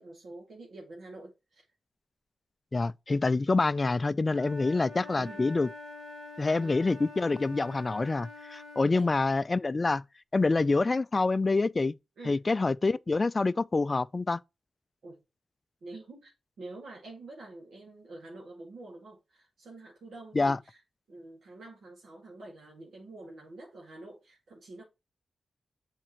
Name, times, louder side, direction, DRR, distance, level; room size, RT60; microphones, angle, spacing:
voice 1, 0.0-1.6 5.2-5.5 6.6-6.9 8.8-9.1 12.2-12.4 15.0-15.2 15.8-16.3 16.6-20.8 21.1-24.8, right 2 dB, 75° right, 2.0 m, -47 dB
voice 2, 2.7-5.7 6.4-10.0 10.3-11.9 12.3-14.4 20.3-20.6, left 3 dB, 30° left, 0.3 m, -26 dB
Wind instrument woodwind instrument, 4.3-8.9, left 2 dB, 60° right, 1.6 m, -45 dB
7.5 x 4.4 x 3.0 m
cardioid pair, 90°, 0 cm